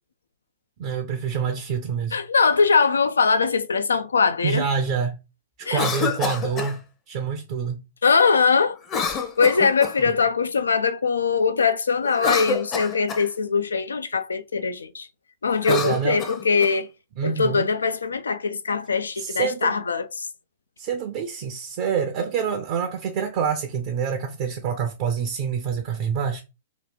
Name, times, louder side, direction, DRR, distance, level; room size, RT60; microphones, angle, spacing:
voice 1, 0.8-2.2 4.4-5.2 5.6-7.8 15.7-16.2 17.2-17.7 19.2-19.8 20.8-26.4, right 7 dB, 45° right, 0.5 m, -26 dB
voice 2, 2.1-4.7 5.7-5.8 8.0-8.8 9.0-15.1 15.4-16.9 17.2-20.3, left 5 dB, 75° left, 0.3 m, -22 dB
Cough, 5.6-6.7 8.8-10.1 12.0-13.3 15.5-16.7, left 5 dB, 25° left, 0.7 m, -28 dB
3.0 x 2.3 x 3.5 m
figure-of-eight pair, 105°, 0 cm